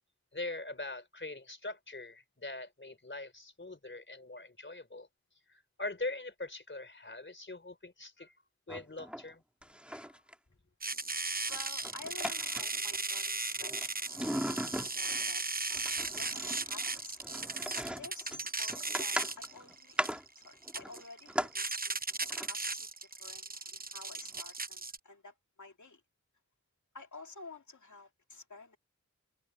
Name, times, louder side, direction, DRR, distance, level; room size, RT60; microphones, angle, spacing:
voice 1, 0.3-5.1 5.8-8.3 8.7-9.4 9.9-10.0, left 2 dB, 40° left, 3.6 m, -42 dB
sound 1, 8.7-9.3 9.6-10.3 11.4-13.2 13.6-15.3 15.7-21.5 22.2-22.5 24.0-24.1 24.3-24.4, equal, 5° right, 1.9 m, -39 dB
sound 2, 10.8-25.0, right 3 dB, 30° right, 0.8 m, -37 dB
voice 2, 11.4-15.8 16.2-17.2 18.0-20.0 20.4-22.0 22.5-22.9 23.2-26.0 26.9-28.8, left 3 dB, 80° left, 2.5 m, -51 dB
wide cardioid pair, 60°, 29 cm